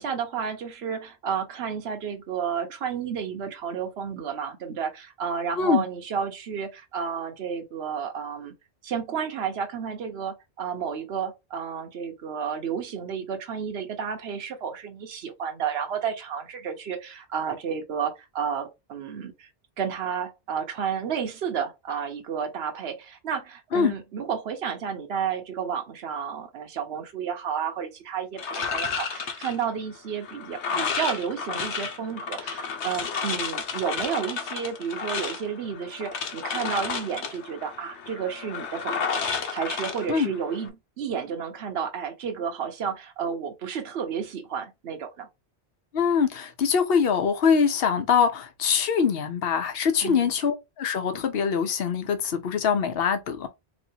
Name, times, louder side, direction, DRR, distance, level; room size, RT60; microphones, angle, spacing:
voice 1, 0.0-8.5 8.8-19.5 19.8-45.3 50.0-50.3, right 7 dB, 65° right, 1.1 m, -31 dB
sound 1, 28.4-40.7, left 5 dB, 85° left, 1.1 m, -32 dB
voice 2, 45.9-53.5, left 6 dB, 60° left, 0.9 m, -23 dB
4.1 x 3.1 x 2.8 m
omnidirectional pair, 1.1 m